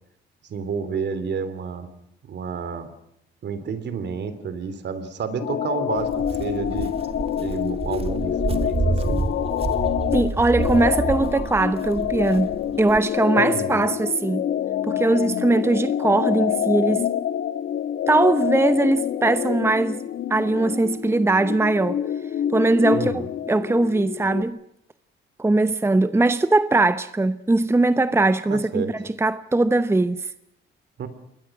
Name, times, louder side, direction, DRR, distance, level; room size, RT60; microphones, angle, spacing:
voice 1, 0.5-1.9 2.2-2.9 3.4-6.9 7.3-9.2 10.8-10.9 13.4-13.8 22.9-23.3 28.5-28.9 31.0-31.1, right 6 dB, 60° right, 3.1 m, -30 dB
sound 1, 5.4-24.4, left 10 dB, 65° left, 1.5 m, -27 dB
Walk footsteps, 5.9-13.0, right 3 dB, 30° right, 1.8 m, -29 dB
voice 2, 10.1-12.5 12.8-14.4 14.9-17.1 18.1-20.0 20.3-22.0 22.5-24.6 25.4-30.3, right 2 dB, 10° right, 0.8 m, -20 dB
28.0 x 22.0 x 6.1 m
cardioid pair, 90°, 20 cm